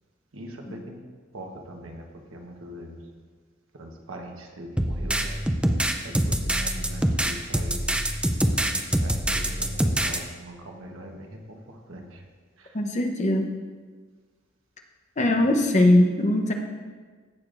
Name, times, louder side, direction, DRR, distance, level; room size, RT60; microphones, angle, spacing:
voice 1, 0.3-1.0 1.3-2.1 2.3-3.0 3.8-5.4 6.0-8.0 8.5-11.3 11.9-12.2 15.4-15.5, right 1 dB, 80° right, 2 dB, 1.2 m, -41 dB
sound 1, 4.8-10.2, right 1 dB, 5° right, 0.5 m, -25 dB
voice 2, 12.7-13.5 15.2-16.5, left 1 dB, 35° left, 4 dB, 0.8 m, -21 dB
16.0 x 6.6 x 2.6 m, 1.5 s
head